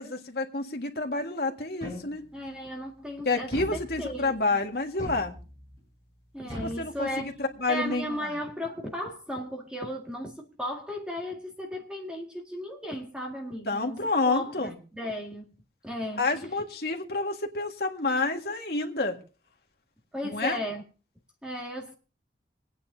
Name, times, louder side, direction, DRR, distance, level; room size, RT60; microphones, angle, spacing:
voice 1, 0.0-2.2 3.2-5.3 6.6-8.4 13.6-14.8 16.2-19.2 20.3-20.6, left 3 dB, 60° left, 1.7 m, -29 dB
sound 1, 1.8-2.5 3.5-4.4 5.0-5.8 6.5-7.5, left 1 dB, 30° right, 7.5 m, -41 dB
voice 2, 2.3-4.4 6.3-7.3 7.7-14.0 14.3-15.5 15.8-16.3 20.1-20.8 21.4-21.9, equal, 5° right, 1.9 m, -35 dB
26.5 x 9.5 x 2.7 m
head